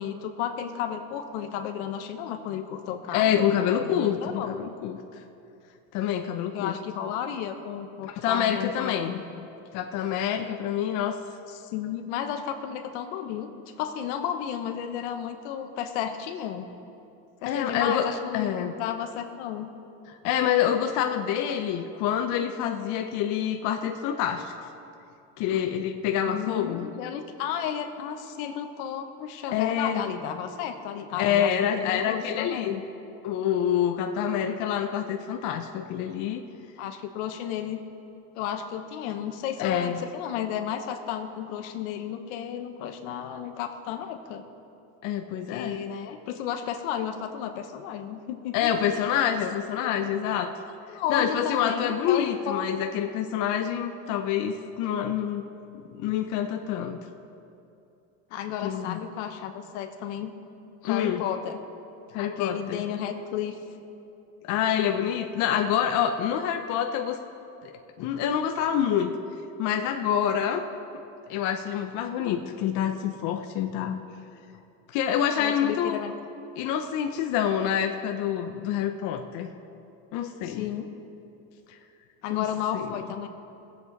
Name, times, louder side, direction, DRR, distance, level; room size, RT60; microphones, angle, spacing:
voice 1, 0.0-4.5 6.5-9.5 11.5-13.5 13.8-16.7 17.4-19.7 25.5-25.6 26.2-32.8 36.8-37.8 38.3-44.4 45.5-49.0 49.8-49.9 50.9-52.7 58.3-60.4 60.8-61.6 62.1-63.6 75.4-76.1 80.4-80.9 82.2-83.3, left 9 dB, 85° left, 6 dB, 1.1 m, -33 dB
voice 2, 3.1-5.0 5.9-6.7 8.0-9.2 9.7-11.2 17.5-18.7 20.2-24.7 25.4-26.9 29.5-30.1 31.2-32.8 33.2-36.4 39.6-40.0 45.0-45.8 48.5-50.5 51.1-55.4 55.9-57.0 58.6-59.0 60.8-61.2 62.1-62.8 64.4-67.2 67.6-67.7 68.0-69.1 69.6-70.6 70.9-71.0 71.3-74.0 74.9-76.0 76.6-79.5 80.1-80.7 81.7-81.8 82.3-82.5 82.7-82.9, left 9 dB, 60° left, 5 dB, 0.7 m, -27 dB
20.0 x 7.9 x 4.1 m, 2.9 s
cardioid pair, 140°, 34 cm